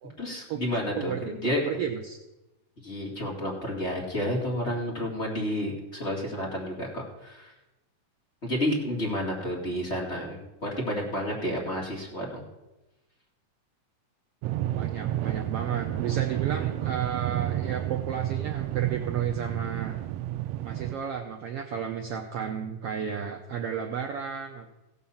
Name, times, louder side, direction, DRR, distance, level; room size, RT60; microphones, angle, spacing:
voice 1, 0.2-1.6 2.8-7.5 8.4-12.4, equal, 25° left, -3 dB, 2.1 m, -30 dB
voice 2, 1.0-2.2 14.8-20.0 20.6-24.7, right 8 dB, 70° right, 3 dB, 1.5 m, -33 dB
sound 1, 14.4-20.9, right 13 dB, 85° right, 1.4 m, -30 dB
16.0 x 5.5 x 7.1 m, 0.99 s
omnidirectional pair, 3.4 m